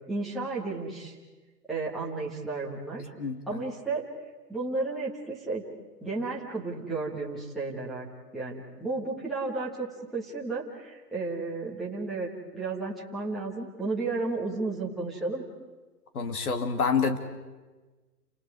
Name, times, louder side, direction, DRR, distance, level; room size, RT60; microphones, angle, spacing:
voice 1, 0.1-1.1 1.7-3.1 3.5-4.0 4.5-5.6 6.0-8.1 8.3-15.4, right 3 dB, ahead, -7 dB, 1.3 m, -33 dB
voice 2, 3.2-3.6 16.1-17.2, left 5 dB, 60° left, 6 dB, 2.7 m, -27 dB
29.5 x 27.5 x 4.9 m, 1.2 s
hypercardioid pair, 160°, 49 cm